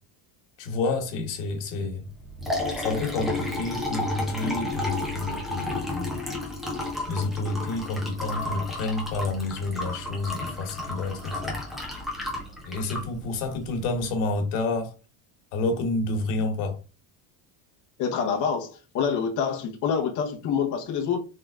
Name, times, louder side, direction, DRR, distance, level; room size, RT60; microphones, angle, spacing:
voice 1, 0.6-2.1 2.8-6.2 7.1-11.6 12.6-14.9 15.5-16.8, left 3 dB, 80° left, 1.4 m, -29 dB
Liquid, 2.1-14.0, left 2 dB, ahead, 0.8 m, -32 dB
voice 2, 18.0-21.2, left 6 dB, 40° left, 0.9 m, -26 dB
3.9 x 3.4 x 3.5 m
cardioid pair, 165°, 47 cm